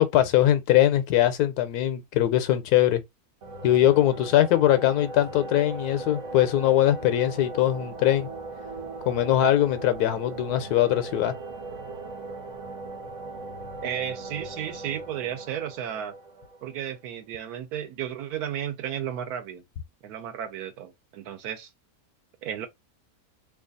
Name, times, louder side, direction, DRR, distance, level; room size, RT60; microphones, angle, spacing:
voice 1, 0.0-3.0 3.6-8.3 9.1-11.3, left 12 dB, 90° left, 1.2 m, -21 dB
sound 1, 3.4-17.0, right 3 dB, 55° right, 1.3 m, -39 dB
voice 2, 13.8-16.1 16.6-19.6 20.0-21.7 22.4-22.7, right 9 dB, 80° right, 1.2 m, -33 dB
3.0 x 2.3 x 3.8 m
omnidirectional pair, 1.6 m